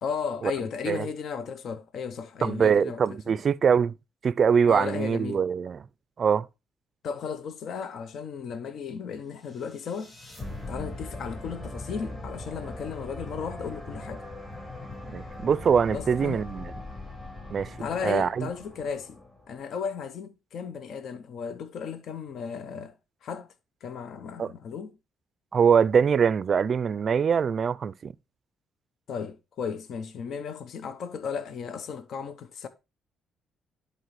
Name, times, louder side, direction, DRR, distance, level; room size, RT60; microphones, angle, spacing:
voice 1, 0.0-3.4 4.7-5.4 7.0-10.2 10.7-14.2 15.9-16.4 17.8-19.2 19.5-22.9 23.2-23.5 23.8-25.0 29.1-32.7, left 6 dB, 65° left, 0.7 m, -35 dB
voice 2, 2.4-3.9 4.2-5.8 6.2-6.5 15.0-16.7 17.5-17.7 18.0-18.5 24.4-24.5 25.5-28.1, right 7 dB, 50° right, 0.4 m, -23 dB
sound 1, 9.4-19.6, left 1 dB, 30° left, 3.9 m, -40 dB
10.5 x 4.2 x 3.0 m
cardioid pair, 90°, 0 cm